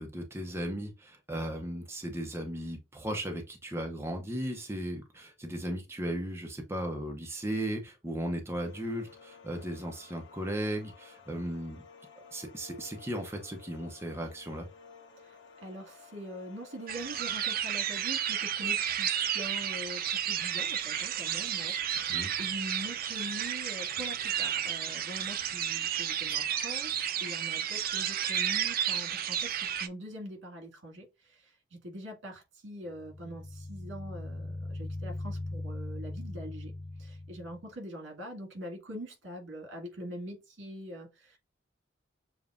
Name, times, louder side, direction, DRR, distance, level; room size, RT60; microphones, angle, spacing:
voice 1, 0.0-11.8 12.3-14.7 22.1-22.3, right 1 dB, 15° right, 0.7 m, -36 dB
sound 1, 8.5-17.2, left 5 dB, 90° left, 0.9 m, -54 dB
voice 2, 15.2-36.7 37.0-41.4, equal, 80° right, 1.9 m, -43 dB
sound 2, 16.9-29.9, right 9 dB, 50° right, 0.4 m, -32 dB
sound 3, 32.9-37.6, left 2 dB, 20° left, 0.7 m, -39 dB
7.0 x 2.3 x 2.4 m
head